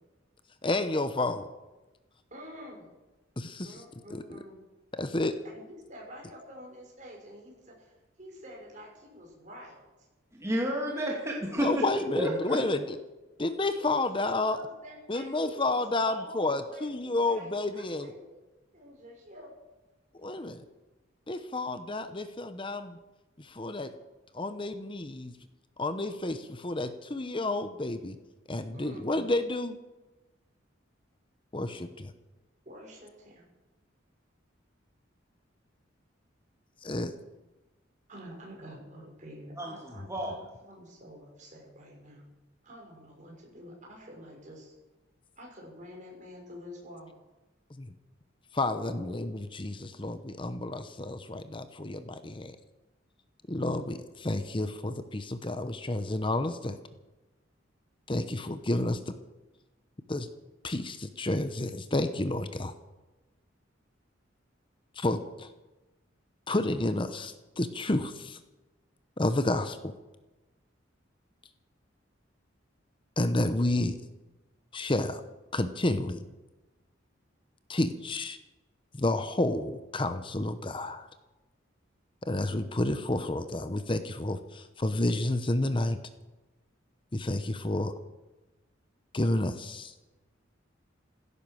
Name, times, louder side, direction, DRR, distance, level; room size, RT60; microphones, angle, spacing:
voice 1, 0.6-1.5 3.4-3.8 4.1-4.4 4.9-5.4 11.6-12.8 13.4-14.6 15.1-18.1 20.2-20.6 21.3-23.0 23.4-23.9 24.3-25.3 25.8-28.2 28.5-29.8 31.5-32.1 36.8-37.1 47.8-47.9 48.5-52.6 53.5-56.8 58.1-59.1 60.1-60.3 60.6-62.7 65.0-65.5 66.5-68.4 69.2-69.9 73.2-74.0 74.7-75.2 75.5-76.2 77.7-78.4 79.0-81.1 82.2-86.0 87.1-87.9 89.1-89.9, left 2 dB, 25° left, 10 dB, 0.9 m, -30 dB
voice 2, 2.3-2.9 3.6-4.6 5.4-7.9 8.2-9.8 11.8-11.9 13.8-14.0 14.2-18.4 18.7-19.5 20.2-20.3 28.7-29.1 32.6-33.4 38.1-42.3 42.6-44.7 45.4-47.2 48.7-49.2, equal, 40° right, -1 dB, 6.3 m, -47 dB
voice 3, 10.3-11.8 12.2-12.6 39.6-40.4, equal, 15° right, -1 dB, 2.3 m, -31 dB
16.0 x 14.0 x 6.4 m, 1.1 s
head